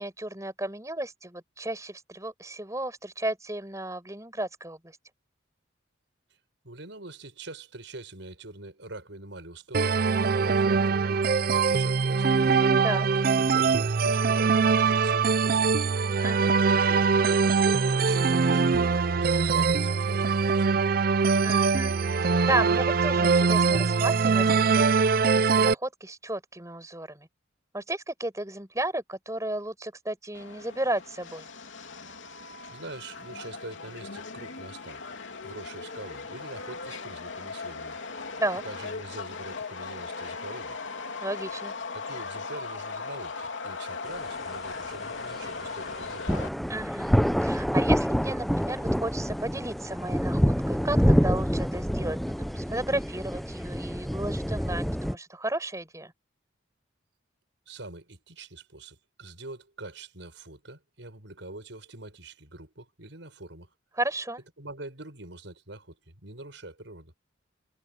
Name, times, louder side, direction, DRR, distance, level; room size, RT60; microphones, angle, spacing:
voice 1, 0.0-4.8 12.8-13.1 16.2-16.5 21.4-24.4 24.7-25.1 25.3-27.3 27.7-31.5 38.4-38.6 41.2-41.7 46.7-47.1 47.4-56.1 64.0-64.4, right 1 dB, 15° right, 6.1 m, -33 dB
voice 2, 6.6-10.0 10.4-11.2 11.5-12.5 13.1-16.0 16.5-18.8 19.1-20.8 32.7-35.0 35.4-38.0 38.6-40.8 41.9-46.3 57.7-63.7 64.6-67.1, right 2 dB, 75° right, 5.5 m, -44 dB
sound 1, 9.7-25.7, right 5 dB, 50° right, 0.5 m, -23 dB
Subway metro underground, 30.3-46.5, left 4 dB, 85° left, 3.1 m, -38 dB
sound 2, 46.3-55.1, equal, ahead, 0.6 m, -26 dB
head